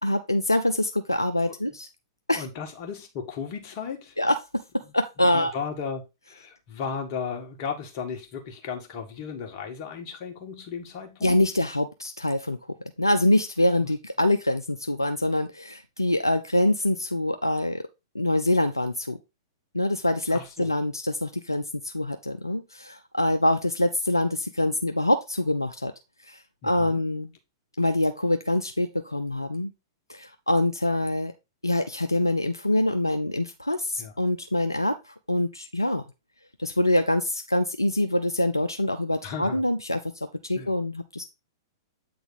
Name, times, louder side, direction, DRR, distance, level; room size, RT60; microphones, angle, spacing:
voice 1, 0.0-1.9 2.3-2.5 4.2-5.5 11.2-12.6 13.0-17.8 18.1-19.2 19.7-25.9 26.2-27.3 27.8-29.7 30.1-31.3 31.6-36.0 36.6-40.0 40.4-41.2, left 1 dB, 90° left, 0.6 m, -25 dB
voice 2, 2.4-4.2 4.8-4.9 5.3-11.4 20.3-20.7 26.6-27.0 34.0-34.1 39.2-39.6 40.5-40.7, left 6 dB, 40° left, 1.8 m, -35 dB
8.4 x 4.0 x 4.1 m
figure-of-eight pair, 105°, 2 cm